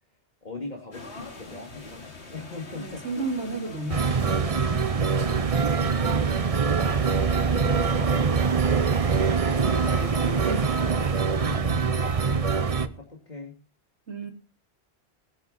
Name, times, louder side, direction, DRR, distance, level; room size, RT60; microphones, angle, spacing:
voice 1, 0.4-3.2 5.2-8.9 11.4-13.6, left 3 dB, 40° left, 1 dB, 2.5 m, -41 dB
sound 1, 0.9-10.9, left 3 dB, 85° left, 2.6 m, -45 dB
voice 2, 2.8-4.8 9.4-11.2 14.1-14.3, right 3 dB, 85° right, 7 dB, 2.4 m, -34 dB
sound 2, 3.9-12.9, right 5 dB, 35° right, 0.8 m, -24 dB
19.0 x 10.5 x 4.1 m, 0.32 s
omnidirectional pair, 1.1 m